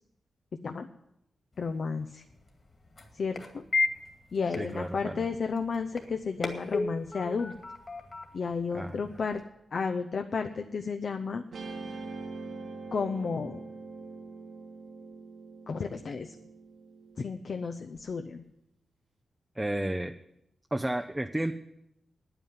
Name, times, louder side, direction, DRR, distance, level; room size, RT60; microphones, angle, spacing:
sound 1, 1.5-9.4, left 3 dB, 40° left, 2.2 m, -36 dB
voice 1, 1.6-2.2 3.1-3.6 4.3-7.5 8.3-9.4 9.7-11.4 12.9-13.6 15.7-16.4 17.2-18.4, left 5 dB, 60° left, 6 dB, 0.7 m, -32 dB
voice 2, 4.6-5.3 8.7-9.0 19.6-20.1 20.7-21.5, right 1 dB, 10° right, 7 dB, 0.5 m, -32 dB
Guitar, 11.5-18.0, right 3 dB, 85° right, 2.3 m, -44 dB
9.8 x 9.1 x 9.3 m, 0.83 s
wide cardioid pair, 105°, 0 cm